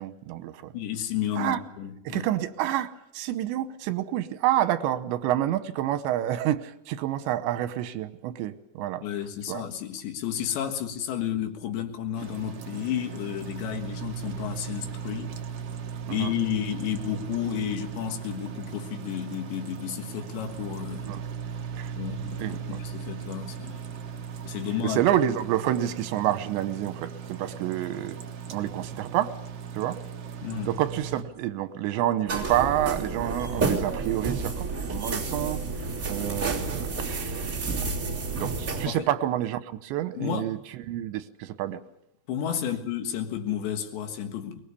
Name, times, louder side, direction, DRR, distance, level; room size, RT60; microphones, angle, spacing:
voice 1, 0.0-0.7 1.4-1.6 2.1-9.0 9.5-9.6 16.1-16.3 21.1-21.2 21.7-21.9 22.4-22.8 24.8-28.2 28.5-29.3 29.7-30.0 30.7-37.7 38.4-41.8, right 12 dB, 85° right, 3.3 m, -28 dB
voice 2, 0.7-2.3 9.0-15.4 16.1-21.1 22.0-23.8 24.4-25.0 30.4-30.8 38.9-39.1 40.2-40.5 42.3-44.6, left 9 dB, 80° left, 3.9 m, -32 dB
sound 1, 12.2-31.2, right 7 dB, 70° right, 1.5 m, -38 dB
sound 2, 32.3-38.9, right 4 dB, 20° right, 2.9 m, -30 dB
23.0 x 21.0 x 6.9 m
omnidirectional pair, 5.0 m